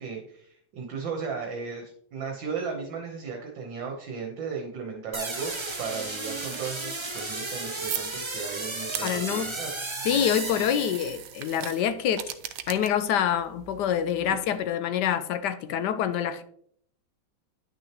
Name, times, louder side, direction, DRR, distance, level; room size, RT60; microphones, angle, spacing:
voice 1, 0.0-5.5 5.8-9.7, right 5 dB, 70° right, 1.7 m, -35 dB
sound 1, 5.1-11.3, right 2 dB, 25° right, 0.6 m, -34 dB
sound 2, 5.4-14.7, right 12 dB, 85° right, 1.5 m, -41 dB
voice 2, 9.0-9.5 10.0-12.3 12.7-16.4, left 9 dB, 75° left, 1.0 m, -26 dB
9.8 x 6.2 x 3.0 m
omnidirectional pair, 2.2 m